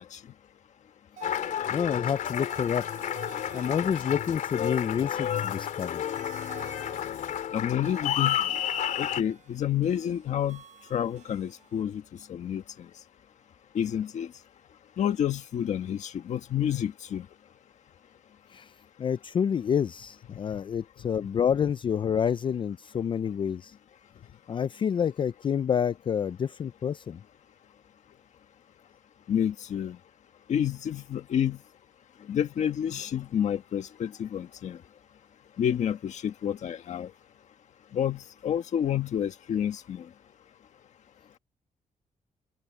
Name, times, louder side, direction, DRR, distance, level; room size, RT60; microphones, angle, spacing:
Applause, 1.2-9.2, left 10 dB, 80° left, 3.5 m, -31 dB
sound 1, 1.2-11.8, right 9 dB, 65° right, 4.7 m, -51 dB
voice 1, 1.7-2.9 3.5-6.0 18.5-18.7 19.0-23.7 24.5-27.2, left 8 dB, 40° left, 0.4 m, -28 dB
voice 2, 7.5-8.4 9.0-10.6 10.9-12.0 12.3-12.9 13.7-14.3 15.0-17.3 29.3-30.0 30.5-31.6 32.3-34.8 35.6-37.1 37.9-40.1, left 9 dB, 60° left, 1.4 m, -29 dB
open air
wide cardioid pair, 160°, 13 cm